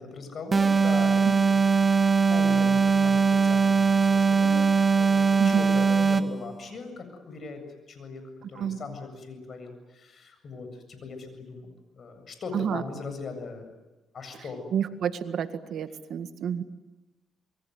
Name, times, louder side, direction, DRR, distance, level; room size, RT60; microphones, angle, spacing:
voice 1, 0.0-1.9 2.3-4.7 5.0-7.6 7.9-8.2 8.5-11.7 12.0-13.7 14.1-14.6, left 4 dB, 50° left, 7 dB, 7.7 m, -39 dB
sound 1, 0.5-6.4, right 5 dB, 30° right, 1.3 m, -21 dB
voice 2, 14.7-16.6, right 8 dB, 65° right, 10 dB, 1.9 m, -30 dB
27.5 x 22.5 x 9.6 m, 1.1 s
cardioid pair, 90°, 0 cm